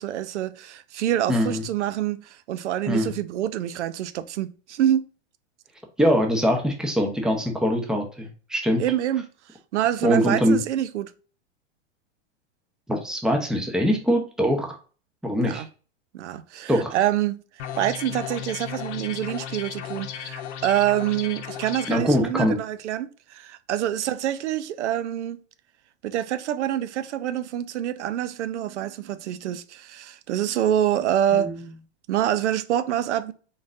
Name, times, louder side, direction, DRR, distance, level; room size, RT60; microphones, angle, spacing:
voice 1, 0.0-5.1 8.8-9.3 9.7-11.1 15.4-15.7 16.1-17.4 17.8-25.4 26.0-31.5 32.1-33.3, right 11 dB, 90° right, 0.5 m, -26 dB
voice 2, 1.3-1.6 2.9-3.1 6.0-8.8 10.0-10.6 12.9-14.8 15.2-15.6 16.7-17.0 21.9-22.6 31.4-31.5, equal, ahead, 0.7 m, -22 dB
sound 1, 17.6-22.0, left 9 dB, 80° left, 0.8 m, -35 dB
3.8 x 3.8 x 2.5 m
hypercardioid pair, 125°, 34 cm